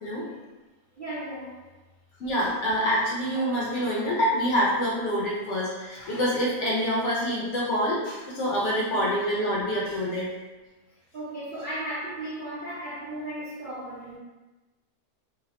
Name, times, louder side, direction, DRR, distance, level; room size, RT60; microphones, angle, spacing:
voice 1, 0.9-1.7 8.9-9.1 10.9-14.2, right 1 dB, 60° right, -10 dB, 0.5 m, -36 dB
voice 2, 2.2-10.3, equal, 60° left, -5 dB, 0.8 m, -26 dB
2.7 x 2.0 x 2.9 m, 1.1 s
omnidirectional pair, 1.6 m